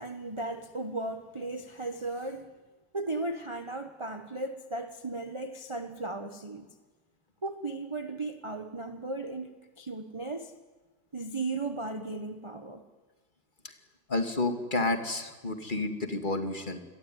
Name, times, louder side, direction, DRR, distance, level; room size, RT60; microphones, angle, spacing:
voice 1, 0.0-2.5 2.9-6.7 7.4-10.5 11.1-12.8, right 2 dB, 20° right, 1.0 m, -36 dB
voice 2, 14.1-16.8, left 2 dB, 25° left, 2.4 m, -30 dB
28.5 x 22.0 x 9.4 m
omnidirectional pair, 2.1 m